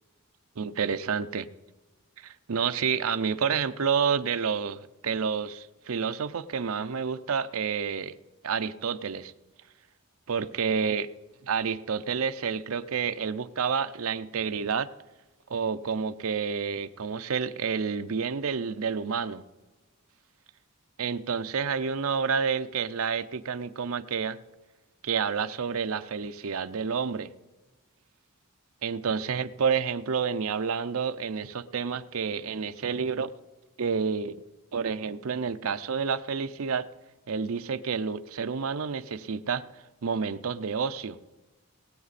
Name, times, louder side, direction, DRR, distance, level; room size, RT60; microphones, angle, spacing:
voice 1, 0.6-1.5 2.2-8.2 8.4-9.3 10.3-11.1 11.5-14.9 15.5-19.4 21.0-24.4 25.0-27.3 28.8-33.3 33.8-34.4 34.7-36.9 37.3-39.7 40.0-41.2, right 6 dB, 80° right, 0.6 m, -29 dB
19.5 x 8.7 x 4.2 m
head